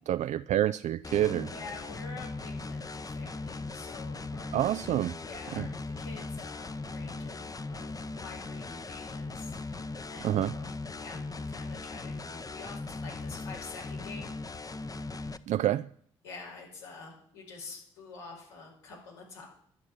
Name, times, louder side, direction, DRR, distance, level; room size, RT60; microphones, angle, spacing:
voice 1, 0.1-1.5 4.5-5.2 5.6-5.7 10.2-10.5 15.5-15.9, right 12 dB, 55° right, 0.4 m, -27 dB
sound 1, 1.0-15.4, left 3 dB, 25° left, 0.9 m, -39 dB
voice 2, 1.4-4.5 5.2-5.7 6.0-14.3 16.2-19.5, left 4 dB, 85° left, 5.1 m, -47 dB
11.5 x 7.2 x 9.6 m
hypercardioid pair, 45°, 14 cm